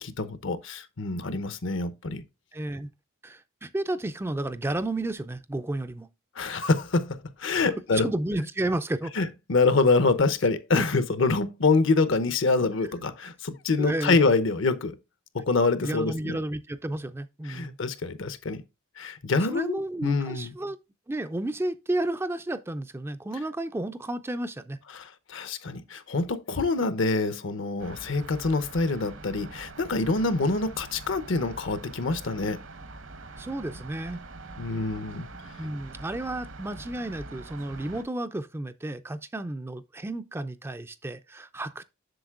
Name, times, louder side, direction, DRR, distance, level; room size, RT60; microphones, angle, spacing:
voice 1, 0.0-2.2 6.4-8.1 9.2-15.0 15.3-16.4 17.5-18.6 19.0-20.5 25.0-32.6 34.6-35.3, left 3 dB, 65° left, 0.8 m, -26 dB
voice 2, 2.5-2.9 3.2-6.1 7.9-9.1 10.7-10.9 13.8-14.2 15.8-17.8 19.5-20.8 21.1-24.8 33.4-34.2 35.6-41.8, right 1 dB, 10° right, 0.4 m, -32 dB
sound 1, 27.8-38.0, right 2 dB, 65° right, 1.0 m, -44 dB
7.8 x 6.5 x 2.4 m
head